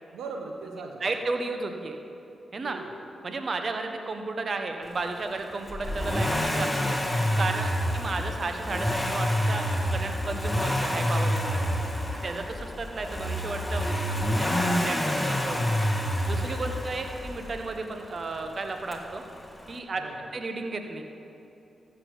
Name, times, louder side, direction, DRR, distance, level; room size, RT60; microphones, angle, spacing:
voice 1, 0.1-1.0 2.6-2.9 7.5-7.8 11.6-12.1 14.0-14.6 20.0-20.2, right 4 dB, 85° right, 2 dB, 1.0 m, -41 dB
voice 2, 1.0-2.0 2.5-2.8 3.2-7.0 7.4-11.6 12.2-15.6 16.3-19.2 19.7-21.0, right 3 dB, 55° right, 5 dB, 1.2 m, -33 dB
Accelerating revving vroom, 5.7-17.6 18.9-19.0, equal, 10° left, 1.9 m, -28 dB
14.5 x 6.7 x 7.2 m, 2.8 s
supercardioid pair, 45°, 0 cm